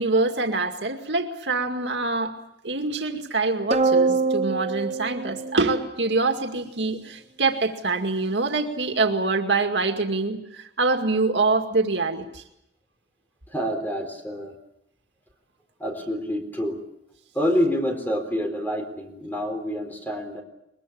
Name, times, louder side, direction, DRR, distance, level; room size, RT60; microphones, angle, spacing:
voice 1, 0.0-2.4 2.6-12.4, right 3 dB, 80° right, 5 dB, 2.1 m, -25 dB
sound 1, 3.7-6.3, right 4 dB, 35° right, 1.1 m, -24 dB
voice 2, 13.5-14.5 15.8-16.8 17.3-20.4, equal, 10° left, 5 dB, 4.0 m, -27 dB
22.0 x 21.5 x 8.5 m, 0.82 s
head